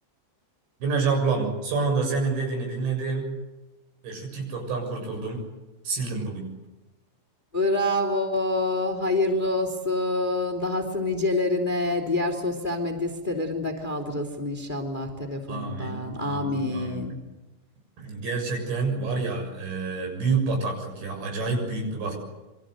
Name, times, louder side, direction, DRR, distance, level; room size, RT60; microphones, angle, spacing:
voice 1, 0.8-3.3 4.0-5.4 5.9-6.5 15.5-17.1 18.0-22.2, right 4 dB, 80° right, 3 dB, 9.1 m, -28 dB
voice 2, 7.5-17.2, left 2 dB, 15° left, 6 dB, 2.6 m, -27 dB
27.5 x 24.5 x 8.0 m, 1.1 s
omnidirectional pair, 5.0 m